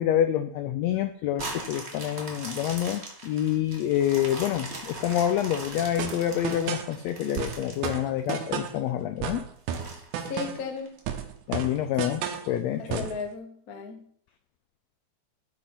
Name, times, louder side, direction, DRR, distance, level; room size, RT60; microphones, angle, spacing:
voice 1, 0.0-9.5 11.5-13.0, left 11 dB, 85° left, 9 dB, 1.5 m, -27 dB
sound 1, 1.3-8.7 9.2-9.3 9.7-11.0 11.5-11.6, right 2 dB, 30° right, 1.3 m, -40 dB
sound 2, 6.0-6.9 7.4-8.8 9.2-10.7 11.1-12.5 12.9-13.2, right 8 dB, 75° right, 2.4 m, -33 dB
voice 2, 10.2-11.0 12.8-14.1, left 5 dB, 55° left, 5 dB, 1.0 m, -36 dB
12.5 x 4.4 x 5.7 m, 0.63 s
omnidirectional pair, 3.6 m